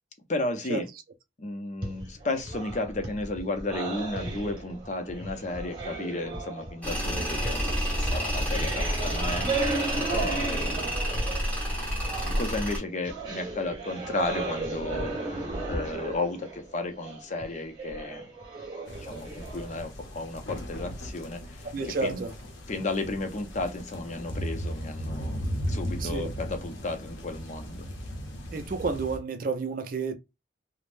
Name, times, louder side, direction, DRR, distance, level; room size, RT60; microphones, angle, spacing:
voice 1, 0.3-0.9 1.4-10.9 12.4-18.3 19.0-22.2 22.7-27.9, left 2 dB, 40° left, 0.5 m, -34 dB
sound 1, 1.8-11.6 11.9-19.8, right 3 dB, 25° right, 1.2 m, -35 dB
Tools, 6.8-12.8, equal, 10° left, 1.1 m, -29 dB
voice 2, 10.0-10.3 21.7-22.3 26.0-26.3 28.5-30.1, right 4 dB, 45° right, 0.4 m, -31 dB
sound 2, 18.9-29.2, equal, 80° left, 0.7 m, -37 dB
3.3 x 2.0 x 2.5 m
head